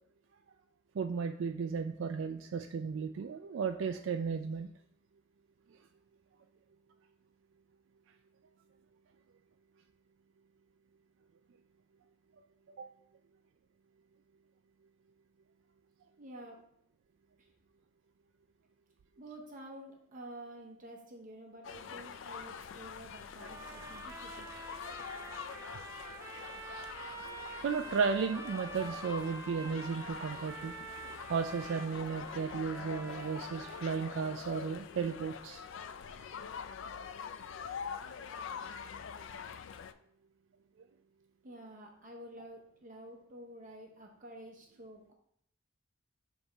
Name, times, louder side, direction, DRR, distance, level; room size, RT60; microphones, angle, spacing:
voice 1, 0.9-4.7 12.4-12.9 25.6-25.8 27.6-30.7 31.3-35.6, right 5 dB, 70° right, 5 dB, 0.3 m, -34 dB
voice 2, 16.2-16.6 17.4-17.5 19.2-24.5 41.4-45.1, right 1 dB, 40° right, 1 dB, 0.8 m, -50 dB
sound 1, 21.6-39.9, left 6 dB, 70° left, 0.4 m, -45 dB
sound 2, 23.4-34.4, right 3 dB, 15° right, 0.5 m, -47 dB
7.0 x 3.5 x 4.0 m, 0.70 s
head